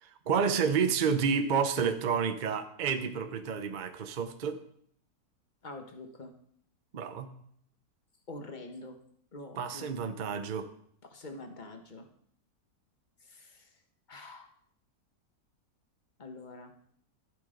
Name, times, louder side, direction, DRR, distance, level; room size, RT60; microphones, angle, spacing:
voice 1, 0.0-4.6 6.9-7.3 9.6-10.7, right 6 dB, 55° right, 8 dB, 0.5 m, -30 dB
voice 2, 5.6-6.3 8.3-9.0 9.3-9.9 11.1-12.1 13.2-13.7 14.1-14.5 16.2-16.7, left 2 dB, 30° left, 5 dB, 1.2 m, -45 dB
12.5 x 7.8 x 5.0 m, 0.66 s
omnidirectional pair, 1.8 m